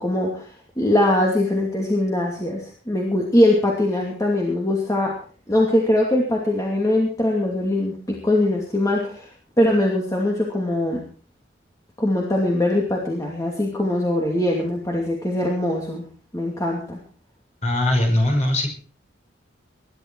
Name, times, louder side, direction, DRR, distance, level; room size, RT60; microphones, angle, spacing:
voice 1, 0.0-5.1 5.5-9.3 9.6-11.0 12.0-16.0 16.3-17.0, left 1 dB, 15° left, -1 dB, 2.6 m, -22 dB
voice 2, 17.6-18.7, left 1 dB, 35° left, 3 dB, 5.3 m, -20 dB
21.0 x 11.5 x 4.7 m, 0.43 s
head